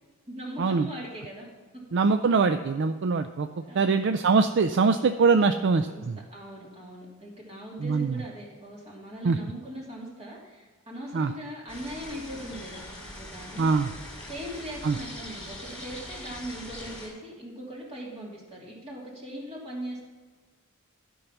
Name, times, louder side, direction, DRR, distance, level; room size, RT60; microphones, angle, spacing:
voice 1, 0.3-1.5 3.5-4.1 5.8-6.0 6.3-13.8 14.3-20.0, equal, 30° right, -3 dB, 2.8 m, -40 dB
voice 2, 1.9-3.5 3.7-6.2 7.8-8.2 9.2-9.4 11.1-11.3 13.6-13.9 14.8-15.0, right 4 dB, 55° right, 9 dB, 0.4 m, -23 dB
sound 1, 11.7-17.1, left 1 dB, 5° left, 3.2 m, -42 dB
12.0 x 5.5 x 5.8 m, 1.4 s
head